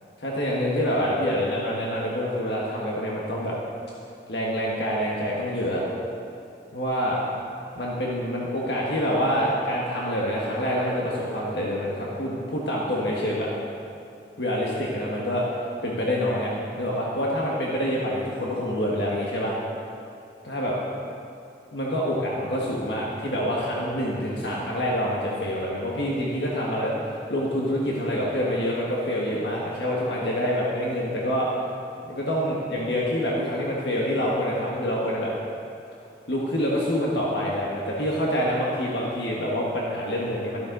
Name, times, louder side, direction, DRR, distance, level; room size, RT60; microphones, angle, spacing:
voice 1, 0.2-3.5 4.3-5.8 6.7-7.2 7.7-13.5 14.4-15.4 15.8-19.5 20.4-20.8 21.7-31.5 32.1-35.3 36.3-40.6, equal, 70° left, -4 dB, 1.6 m, -26 dB
13.0 x 12.5 x 3.9 m, 2.6 s
head